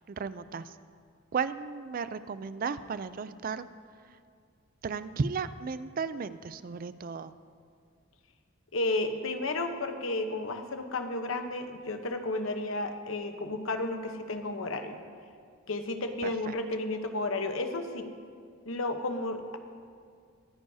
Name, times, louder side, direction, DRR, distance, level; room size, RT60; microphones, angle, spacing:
voice 1, 0.1-0.7 1.3-3.7 4.8-7.4 16.2-16.5, right 5 dB, 45° right, 13 dB, 0.4 m, -34 dB
voice 2, 8.7-15.0 15.7-18.1 18.7-19.6, left 2 dB, 85° left, 6 dB, 1.0 m, -32 dB
23.5 x 9.5 x 2.8 m, 2.1 s
head